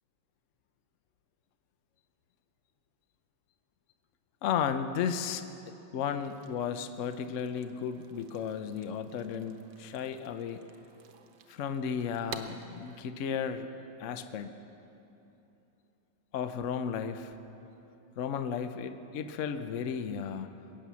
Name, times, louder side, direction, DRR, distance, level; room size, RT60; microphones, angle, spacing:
voice 1, 4.4-10.6 11.5-13.7 14.0-14.5 16.3-17.3 18.2-20.5, left 7 dB, 75° left, 9 dB, 0.7 m, -34 dB
sound 1, 6.2-13.0, right 7 dB, 65° right, 1.4 m, -51 dB
22.0 x 9.1 x 7.0 m, 2.9 s
omnidirectional pair, 2.2 m